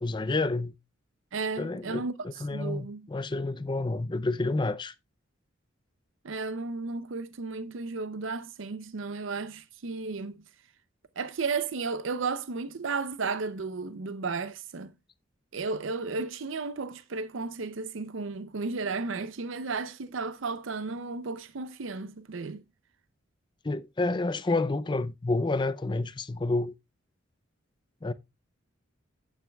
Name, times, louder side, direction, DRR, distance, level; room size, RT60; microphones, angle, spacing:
voice 1, 0.0-0.7 1.6-4.9 23.6-26.7 28.0-28.1, left 2 dB, 25° left, 0.5 m, -29 dB
voice 2, 1.3-2.1 2.5-3.0 6.2-10.4 11.2-14.9 15.5-22.6, right 4 dB, 75° right, 0.6 m, -33 dB
14.0 x 9.0 x 2.3 m
head